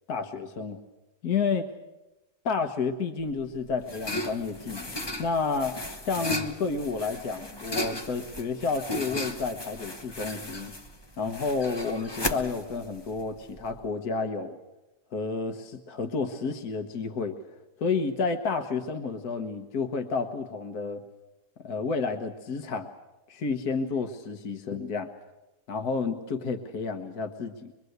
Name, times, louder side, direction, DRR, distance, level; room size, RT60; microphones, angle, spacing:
voice 1, 0.1-0.8 1.2-1.7 2.5-4.9 5.2-5.8 6.1-10.7 11.2-14.6 15.1-17.4 17.8-21.0 21.6-22.9 23.3-25.1 25.7-27.7, left 4 dB, 70° left, 7 dB, 1.8 m, -30 dB
bathroom paper, 3.2-13.8, left 1 dB, 20° left, 0.9 m, -36 dB
23.5 x 23.5 x 8.0 m, 0.99 s
omnidirectional pair, 1.7 m